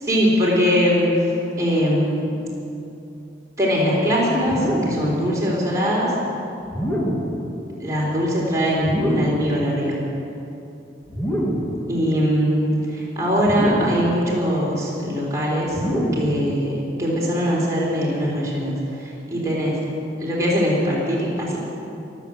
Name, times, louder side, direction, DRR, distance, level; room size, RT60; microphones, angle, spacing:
voice 1, 0.1-1.3 1.6-2.3 3.6-6.1 7.8-10.0 11.9-15.8 16.1-19.8 20.2-21.6, equal, 15° right, -5 dB, 4.0 m, -21 dB
sound 1, 4.4-5.1 6.6-7.4 8.8-9.5 11.1-11.8 13.4-14.1 15.7-16.4, equal, 5° left, 2.4 m, -25 dB
22.5 x 8.2 x 7.8 m, 2.8 s
head